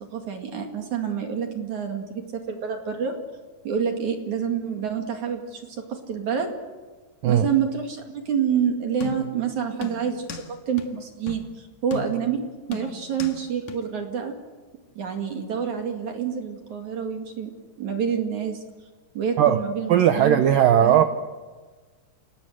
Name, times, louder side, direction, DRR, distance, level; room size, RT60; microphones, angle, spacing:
voice 1, 0.1-3.1 3.6-6.5 7.3-14.4 14.9-17.5 17.8-18.6 19.1-20.4 20.8-21.0, right 7 dB, 50° right, 4 dB, 2.9 m, -28 dB
sound 1, 9.0-9.4 9.8-10.5 10.8-10.9 11.3-11.5 11.9-12.4 12.7-13.4 13.7-13.8, left 4 dB, 55° left, 2.3 m, -35 dB
voice 2, 19.9-21.0, right 10 dB, 85° right, 8 dB, 2.0 m, -17 dB
29.0 x 19.0 x 7.9 m, 1.3 s
omnidirectional pair, 5.4 m